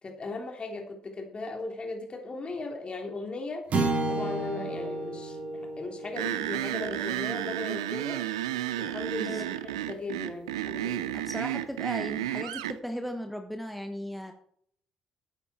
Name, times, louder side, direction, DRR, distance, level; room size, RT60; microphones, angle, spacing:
voice 1, 0.0-3.6 4.1-8.2 8.8-11.2, left 3 dB, 35° left, 2 dB, 3.2 m, -37 dB
sound 1, 3.7-8.2, right 2 dB, 50° right, 3.1 m, -32 dB
sound 2, 6.2-12.8, right 13 dB, 85° right, 0.5 m, -32 dB
voice 2, 11.1-14.3, equal, ahead, 5 dB, 1.2 m, -37 dB
11.5 x 9.1 x 4.3 m, 0.64 s
hypercardioid pair, 45°, 3 cm